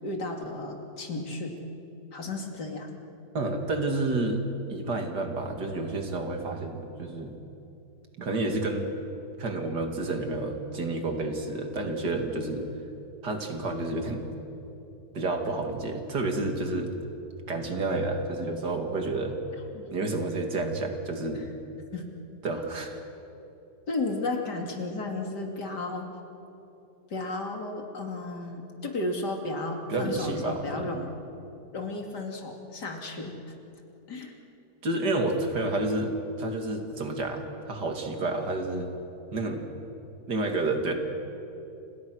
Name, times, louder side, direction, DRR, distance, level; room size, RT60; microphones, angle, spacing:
voice 1, 0.0-1.5 2.1-2.9 19.7-19.9 21.3-21.4 21.9-22.1 23.9-26.1 27.1-31.1 31.7-33.4 34.1-34.3, left 2 dB, 85° left, 2 dB, 3.3 m, -33 dB
voice 2, 3.3-4.4 4.7-7.4 8.2-8.9 9.4-12.7 13.2-14.3 15.1-16.9 17.5-19.4 19.9-21.4 22.4-23.0 29.9-31.0 34.8-38.9 39.3-39.6 40.3-40.9, right 2 dB, 85° right, 4 dB, 3.1 m, -30 dB
30.0 x 27.5 x 6.4 m, 3.0 s
omnidirectional pair, 1.7 m